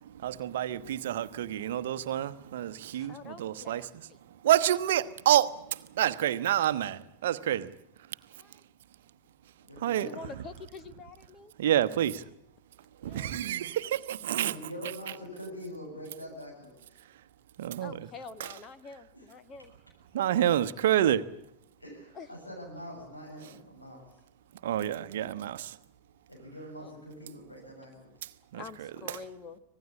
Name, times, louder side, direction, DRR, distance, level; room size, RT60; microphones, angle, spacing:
voice 1, 0.1-3.8 4.4-7.7 9.8-10.1 11.6-12.2 13.0-14.5 17.6-18.1 20.1-21.3 24.6-25.8 28.5-29.2, right 11 dB, 55° right, 1.0 m, -28 dB
voice 2, 2.9-4.2 8.3-8.6 9.8-11.5 13.0-13.4 17.8-19.7 22.1-22.3 26.8-26.9 28.5-29.6, left 4 dB, 30° left, 1.3 m, -46 dB
voice 3, 9.7-10.2 14.3-16.8 19.1-19.2 21.8-24.0 26.3-28.1, equal, 85° left, 7.4 m, -44 dB
25.5 x 19.0 x 8.6 m
figure-of-eight pair, 90°, 0 cm